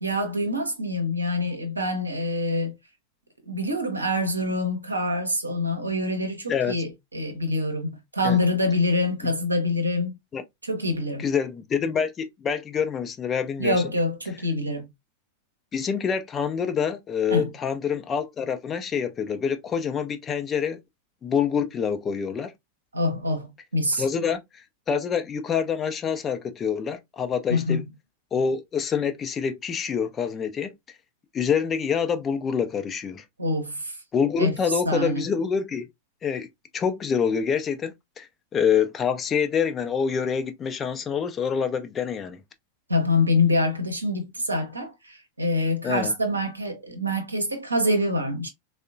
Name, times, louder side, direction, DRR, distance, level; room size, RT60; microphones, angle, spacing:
voice 1, 0.0-2.7 3.5-10.2 10.6-11.3 13.6-14.9 17.3-17.5 22.9-24.0 27.5-27.8 33.4-33.9 34.4-34.5 34.9-35.3 42.9-48.5, left 2 dB, 80° right, 0.7 m, -25 dB
voice 2, 11.2-13.9 15.7-20.8 21.2-22.5 24.0-27.8 28.3-30.7 31.3-33.2 34.1-35.9 36.2-36.5 36.7-38.3 38.5-42.4 45.8-46.1, left 7 dB, 25° left, 0.4 m, -26 dB
3.5 x 2.1 x 2.4 m
figure-of-eight pair, 90°, 0 cm